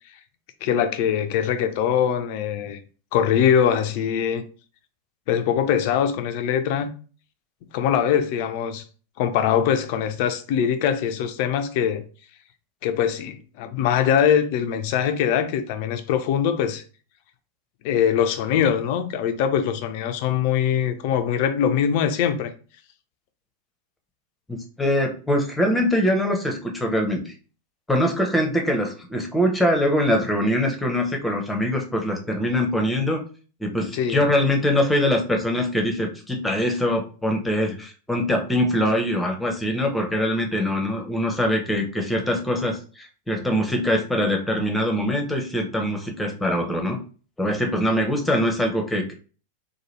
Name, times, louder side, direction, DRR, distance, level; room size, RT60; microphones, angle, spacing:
voice 1, 0.6-2.8 3.1-4.4 5.3-6.9 7.7-8.8 9.2-12.0 12.8-16.8 17.8-22.5 33.9-34.2, left 8 dB, 45° left, 0.4 m, -22 dB
voice 2, 24.5-27.3 27.9-33.2 33.6-47.0 47.4-49.1, left 1 dB, 5° left, 0.7 m, -23 dB
2.9 x 2.2 x 3.1 m
figure-of-eight pair, 90°, 0 cm